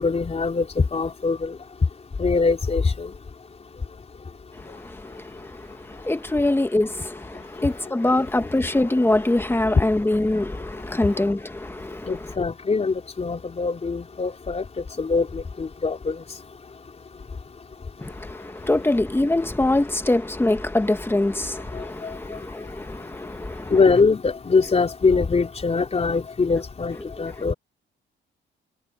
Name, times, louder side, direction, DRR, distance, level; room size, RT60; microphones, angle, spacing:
voice 1, 0.0-1.5 2.2-3.1 12.1-14.6 15.0-16.1 22.0-22.1 23.7-27.5, left 4 dB, 30° left, 4.0 m, -22 dB
voice 2, 4.5-12.3 18.0-23.7, left 2 dB, 10° left, 2.0 m, -24 dB
cardioid pair, 90°, 20 cm